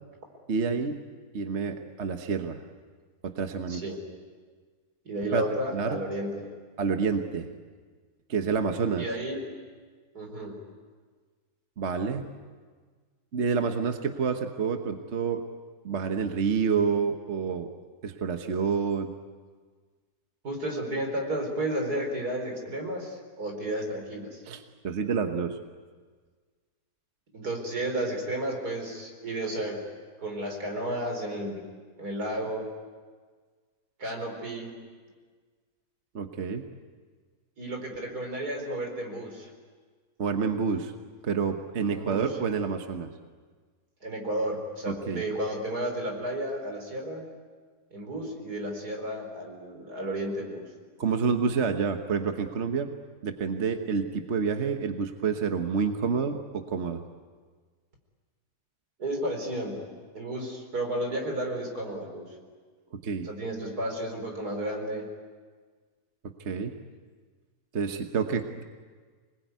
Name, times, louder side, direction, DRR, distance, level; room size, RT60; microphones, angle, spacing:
voice 1, 0.5-1.0 1.3-2.6 3.2-3.8 5.3-5.4 5.7-6.0 6.8-7.5 8.3-9.0 11.8-12.3 13.3-15.4 15.8-17.7 18.0-19.2 24.5-25.6 36.1-36.7 40.2-40.9 41.2-43.1 44.9-45.2 51.0-52.9 53.2-57.0 62.9-63.3 66.4-66.8 67.7-68.6, right 5 dB, 50° right, 6 dB, 1.4 m, -28 dB
voice 2, 3.7-4.0 5.1-6.5 9.0-9.5 10.2-10.6 20.4-24.4 27.3-29.8 30.2-31.6 32.0-32.7 34.0-34.7 37.6-39.5 41.9-42.2 44.0-47.3 47.9-50.7 59.0-59.9 60.1-62.4 63.2-65.1, right 1 dB, 80° right, 2 dB, 5.1 m, -32 dB
26.5 x 20.5 x 9.4 m, 1.5 s
omnidirectional pair, 1.6 m